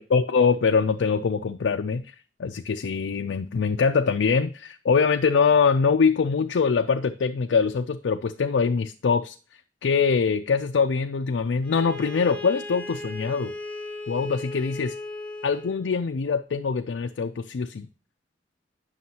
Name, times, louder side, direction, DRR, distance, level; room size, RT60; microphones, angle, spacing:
voice 1, 0.0-2.1 2.4-13.5 14.1-14.9 15.4-17.9, left 5 dB, 80° left, 6 dB, 0.4 m, -23 dB
Bowed string instrument, 11.6-15.8, left 2 dB, 10° left, 0.9 m, -37 dB
9.3 x 6.3 x 2.8 m, 0.37 s
head